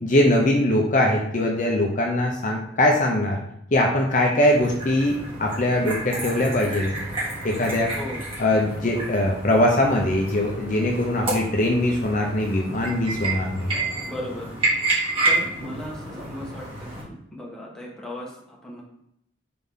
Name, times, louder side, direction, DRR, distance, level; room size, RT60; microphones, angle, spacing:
voice 1, 0.0-3.4 3.7-6.9 7.4-7.9 8.4-13.7, left 1 dB, 45° left, 0 dB, 0.7 m, -21 dB
sound 1, 4.5-17.0, right 2 dB, 30° right, 1.9 m, -30 dB
voice 2, 14.1-14.5 15.2-18.8, left 1 dB, 5° left, -4 dB, 1.4 m, -36 dB
4.7 x 3.8 x 5.4 m, 0.74 s
head